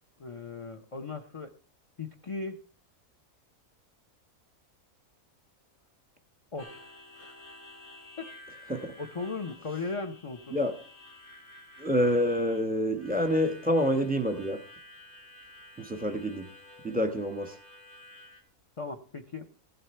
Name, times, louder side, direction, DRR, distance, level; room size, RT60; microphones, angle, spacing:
voice 1, 0.2-1.5 2.0-2.6 6.5-6.9 7.1-7.3 8.2-8.3 8.7-10.6 18.8-19.5, left 4 dB, 35° left, 5 dB, 0.6 m, -37 dB
Harmonica, 6.6-18.4, left 1 dB, 90° left, 2.6 m, -51 dB
voice 2, 11.8-14.6 15.8-16.5 16.8-17.6, equal, 5° right, 7 dB, 1.2 m, -27 dB
15.5 x 8.0 x 4.5 m, 0.40 s
omnidirectional pair, 1.5 m